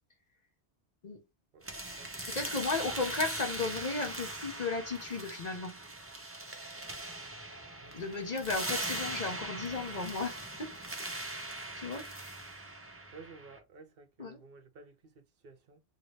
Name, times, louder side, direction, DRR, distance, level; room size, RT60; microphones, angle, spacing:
sound 1, 1.6-13.6, right 2 dB, 15° right, 0.6 m, -40 dB
voice 1, 2.3-5.8 7.9-10.7 11.8-12.1 14.2-14.4, left 3 dB, 45° left, 0.8 m, -35 dB
voice 2, 13.1-15.8, right 4 dB, 65° right, 0.8 m, -54 dB
2.9 x 2.8 x 3.1 m
omnidirectional pair, 1.1 m